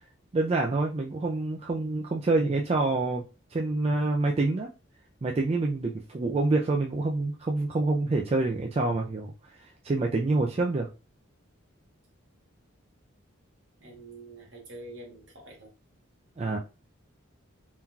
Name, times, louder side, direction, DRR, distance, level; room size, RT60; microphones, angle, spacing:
voice 1, 0.3-3.2 3.5-4.7 5.2-9.3 9.8-10.9 16.4-16.6, right 2 dB, 30° right, 0.3 m, -26 dB
voice 2, 13.8-15.7, right 2 dB, 65° right, 1.1 m, -46 dB
3.7 x 2.8 x 2.3 m
head